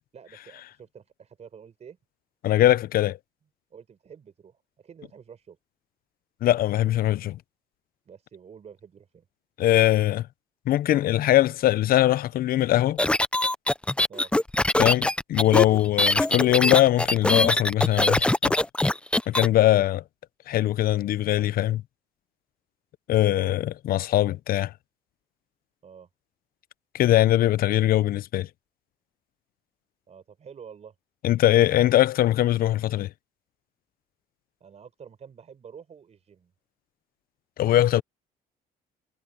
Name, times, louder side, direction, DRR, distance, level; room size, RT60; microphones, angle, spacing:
voice 1, 0.1-2.0 3.7-5.6 8.1-9.3 14.1-14.3 23.3-23.5 25.8-26.1 30.1-31.0 34.6-36.5, right 7 dB, 40° right, 5.4 m, -48 dB
voice 2, 2.4-3.2 6.4-7.4 9.6-10.3 10.7-13.0 14.8-18.6 19.3-20.0 20.5-21.8 23.1-24.7 26.9-28.5 31.2-33.1 37.6-38.0, left 14 dB, 60° left, 0.7 m, -21 dB
sound 1, 13.0-19.5, left 1 dB, 5° left, 0.5 m, -22 dB
cardioid pair, 110°, 17 cm